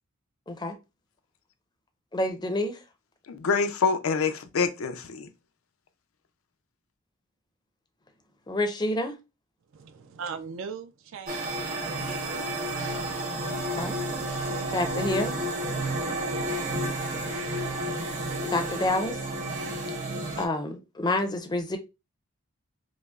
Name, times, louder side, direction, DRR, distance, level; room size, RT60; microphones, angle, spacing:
voice 1, 2.1-2.8 8.5-9.1 13.7-14.0 14.7-15.4 18.4-19.2 20.4-21.8, left 1 dB, 20° left, 0.5 m, -28 dB
voice 2, 3.3-5.3, left 5 dB, 85° left, 0.5 m, -26 dB
voice 3, 9.7-12.7, right 6 dB, 70° right, 0.4 m, -40 dB
sound 1, 11.3-20.4, right 1 dB, 35° right, 0.7 m, -31 dB
5.0 x 2.0 x 2.3 m
head